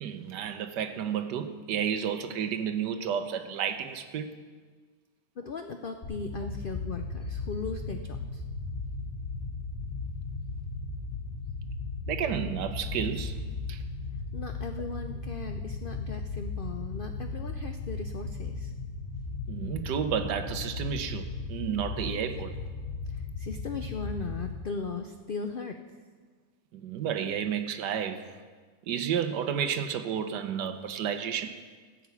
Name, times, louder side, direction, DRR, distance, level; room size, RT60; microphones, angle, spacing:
voice 1, 0.0-4.3 12.1-13.4 13.7-13.8 19.5-22.5 26.7-28.2 28.9-31.6, right 8 dB, 90° right, 9 dB, 1.4 m, -31 dB
voice 2, 5.4-8.4 14.3-18.7 23.1-25.8, left 4 dB, 80° left, 6 dB, 0.4 m, -38 dB
sound 1, 6.0-24.5, left 3 dB, 20° left, 1.7 m, -36 dB
15.0 x 6.0 x 8.3 m, 1.5 s
omnidirectional pair, 1.8 m